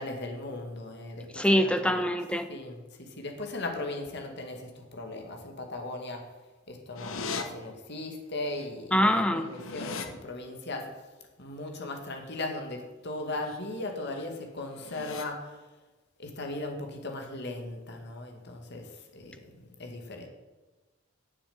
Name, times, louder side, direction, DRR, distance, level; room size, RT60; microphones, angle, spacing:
voice 1, 0.0-2.0 2.5-2.8 3.2-6.2 6.7-10.8 11.4-15.4 16.2-18.9 19.1-19.5 19.8-20.3, left 2 dB, 55° left, 3 dB, 2.1 m, -37 dB
voice 2, 1.3-2.5 8.9-9.5, equal, 5° left, 8 dB, 0.9 m, -24 dB
sound 1, 7.0-7.4 8.6-8.7 9.0-10.1 13.2-13.6 14.0-14.3 14.7-15.2, left 4 dB, 75° left, 1.1 m, -38 dB
9.4 x 7.2 x 8.7 m, 1.2 s
head